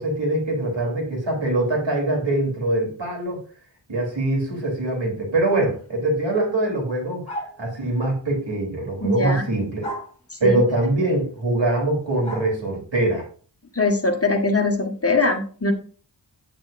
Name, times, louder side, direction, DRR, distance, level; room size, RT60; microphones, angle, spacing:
voice 1, 0.0-3.4 3.9-7.2 7.6-9.9 10.4-13.2, right 2 dB, 75° right, 0 dB, 3.3 m, -23 dB
sound 1, 7.3-7.6 9.8-10.1 12.2-12.5, equal, 15° left, 4.8 m, -32 dB
voice 2, 9.0-9.4 10.3-10.6 13.7-15.7, left 3 dB, 30° left, 3 dB, 1.4 m, -21 dB
8.8 x 8.7 x 2.5 m, 0.42 s
wide cardioid pair, 50°, 44 cm